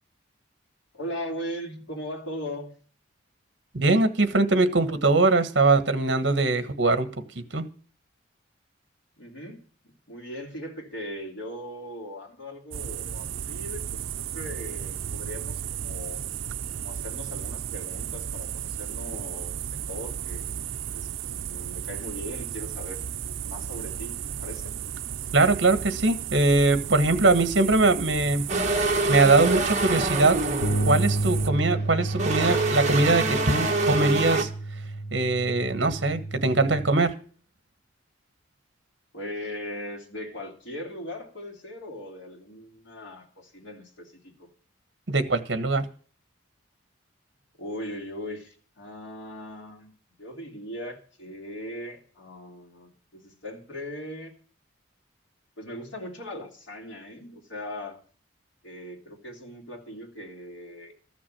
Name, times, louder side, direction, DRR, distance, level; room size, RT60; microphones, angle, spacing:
voice 1, 0.9-2.7 9.2-9.6 10.1-16.2 16.7-23.0 23.4-24.8 39.1-44.5 47.6-49.9 50.2-54.3 55.6-58.0 58.6-60.9, left 1 dB, 75° left, -1 dB, 3.0 m, -39 dB
voice 2, 3.7-7.1 7.3-7.7 25.3-28.4 29.1-30.4 30.8-34.5 35.1-37.1 45.1-45.9, right 3 dB, 60° right, 11 dB, 1.4 m, -22 dB
sound 1, 12.7-31.5, right 9 dB, 80° right, 0.5 m, -34 dB
sound 2, 28.5-34.4, right 2 dB, 35° right, 1.6 m, -26 dB
sound 3, 30.6-36.9, right 2 dB, 55° left, 1.2 m, -30 dB
13.5 x 6.1 x 8.8 m, 0.42 s
head